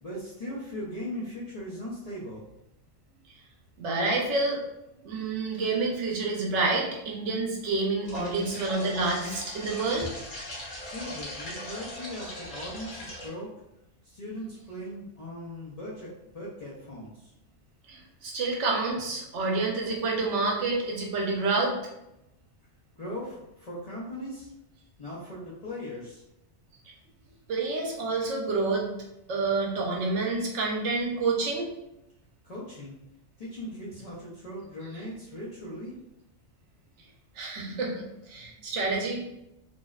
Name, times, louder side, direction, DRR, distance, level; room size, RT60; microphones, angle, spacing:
voice 1, 0.0-2.4 10.8-13.5 14.0-17.3 23.0-24.5 25.0-26.2 32.4-33.0 33.4-36.0, left 1 dB, 65° left, -7 dB, 0.3 m, -39 dB
voice 2, 3.8-4.6 5.0-10.1 17.9-21.7 27.5-28.9 29.3-31.7 37.4-39.2, right 3 dB, 70° right, -2 dB, 0.9 m, -28 dB
sound 1, 8.0-13.3, left 1 dB, 45° left, 0.8 m, -40 dB
2.6 x 2.0 x 2.3 m, 0.85 s
omnidirectional pair, 1.3 m